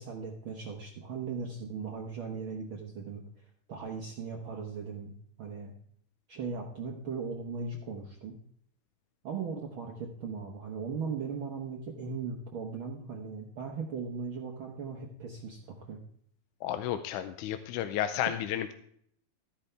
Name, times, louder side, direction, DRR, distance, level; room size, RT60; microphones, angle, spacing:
voice 1, 0.0-3.2 3.7-5.1 5.4-5.7 6.3-8.4 9.2-15.6 15.9-16.0, right 5 dB, 55° right, 0 dB, 1.6 m, -38 dB
voice 2, 16.6-18.7, left 11 dB, 85° left, 10 dB, 2.1 m, -32 dB
13.0 x 9.8 x 3.4 m, 0.65 s
omnidirectional pair, 3.5 m